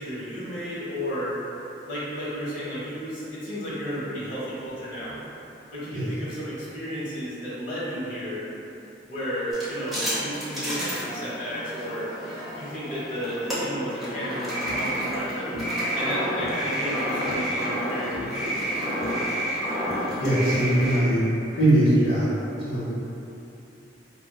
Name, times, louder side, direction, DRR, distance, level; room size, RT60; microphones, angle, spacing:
voice 1, 0.0-1.3 1.8-5.2 5.7-8.5 9.0-12.1 12.5-15.5 15.9-18.5, equal, 50° left, -9 dB, 1.0 m, -33 dB
sound 1, 9.5-21.0, equal, ahead, 0.8 m, -29 dB
voice 2, 20.0-21.2 21.5-22.3 22.6-22.8, right 1 dB, 75° left, -13 dB, 0.9 m, -21 dB
4.3 x 2.2 x 2.2 m, 2.9 s
head